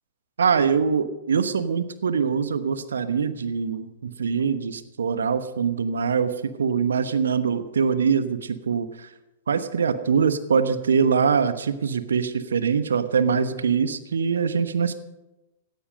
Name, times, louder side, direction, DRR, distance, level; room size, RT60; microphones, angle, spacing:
voice 1, 0.4-9.1 9.5-15.0, right 6 dB, 70° right, 12 dB, 1.1 m, -23 dB
17.0 x 13.0 x 5.2 m, 1.0 s
figure-of-eight pair, 100°, 0 cm